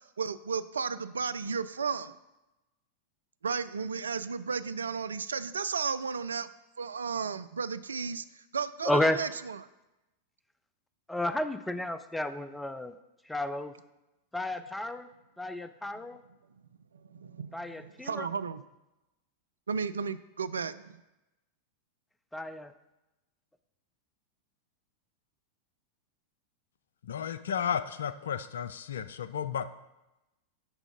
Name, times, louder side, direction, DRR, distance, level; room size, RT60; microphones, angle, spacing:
voice 1, 0.2-2.1 3.4-6.5 6.8-9.6 17.1-18.6 19.7-21.0, right 5 dB, 70° right, 0.3 m, -34 dB
voice 2, 8.8-9.2 11.1-13.0 13.3-13.7 14.3-15.1 15.4-16.2 17.5-18.3 22.3-22.7, left 1 dB, 5° left, 0.5 m, -32 dB
voice 3, 27.1-29.7, left 8 dB, 65° left, 0.4 m, -33 dB
11.0 x 3.6 x 5.1 m
figure-of-eight pair, 90°, 0 cm